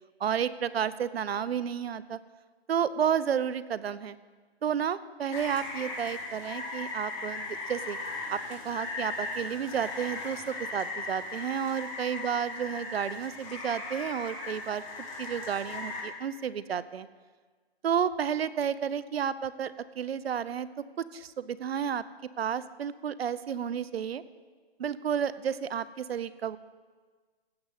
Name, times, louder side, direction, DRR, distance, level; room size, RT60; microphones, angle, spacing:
voice 1, 0.2-2.2 2.7-4.2 4.6-8.0 8.3-14.8 15.2-17.1 17.8-22.0 22.4-24.2 24.8-26.6, right 8 dB, 70° right, 16 dB, 0.7 m, -31 dB
Rain, 5.3-16.0, left 3 dB, 45° left, 3.7 m, -38 dB
15.5 x 5.5 x 7.8 m, 1.4 s
hypercardioid pair, 155°, 31 cm